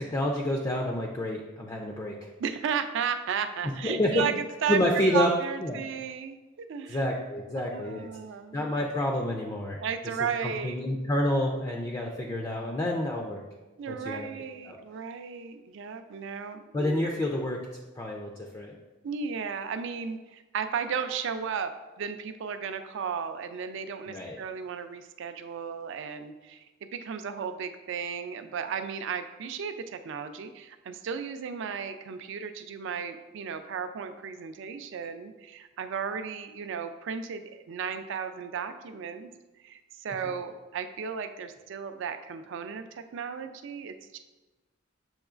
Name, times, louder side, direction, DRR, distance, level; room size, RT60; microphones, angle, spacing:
voice 1, 0.0-2.3 3.6-4.3 4.7-5.3 5.6-5.8 6.8-8.1 8.5-9.8 10.4-13.4 13.9-14.3 14.6-14.8 16.7-17.7 18.0-18.8 24.1-24.4, left 1 dB, 20° left, 0 dB, 0.3 m, -29 dB
voice 2, 2.4-4.8 5.1-7.0 7.6-8.6 9.8-10.8 13.8-17.1 19.0-26.6 26.9-39.3 39.6-44.2, right 6 dB, 65° right, 9 dB, 0.4 m, -34 dB
7.1 x 3.0 x 2.4 m, 1.2 s
head